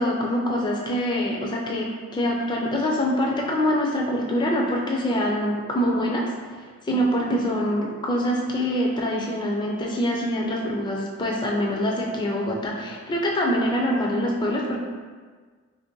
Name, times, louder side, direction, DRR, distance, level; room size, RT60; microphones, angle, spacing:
voice 1, 0.0-6.3 6.8-14.8, equal, 20° left, -2 dB, 0.4 m, -24 dB
3.0 x 2.6 x 3.7 m, 1.5 s
head